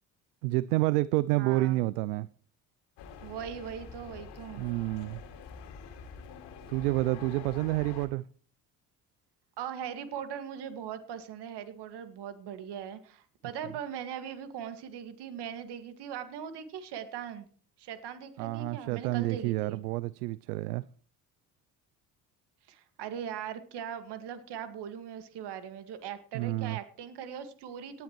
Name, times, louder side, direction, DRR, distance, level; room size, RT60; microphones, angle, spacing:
voice 1, 0.4-2.3 4.6-5.2 6.7-8.2 18.4-20.8 26.3-26.8, right 19 dB, 80° right, 0.5 m, -29 dB
voice 2, 1.4-1.8 3.2-4.7 9.6-17.5 17.8-19.8 22.7-28.0, right 8 dB, 60° right, 2.1 m, -40 dB
sound 1, 3.0-8.1, left 6 dB, 60° left, 2.4 m, -46 dB
18.5 x 10.0 x 3.1 m
hypercardioid pair, 55°, 45 cm